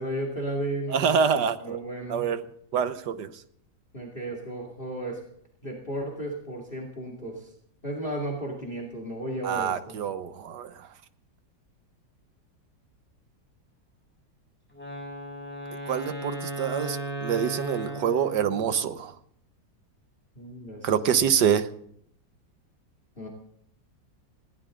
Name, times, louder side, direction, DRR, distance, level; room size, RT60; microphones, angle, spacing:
voice 1, 0.0-1.2 1.6-2.2 3.9-5.2 5.6-7.5 7.8-10.0 20.4-21.3 23.2-23.3, right 1 dB, 30° left, 2 dB, 2.6 m, -34 dB
voice 2, 0.9-1.8 2.1-2.4 2.7-3.3 9.4-10.7 15.9-19.1 20.8-21.7, right 7 dB, 70° right, 11 dB, 1.6 m, -26 dB
Wind instrument woodwind instrument, 14.7-18.9, right 1 dB, 5° left, 7.2 m, -36 dB
20.0 x 16.5 x 3.8 m, 0.67 s
omnidirectional pair, 2.0 m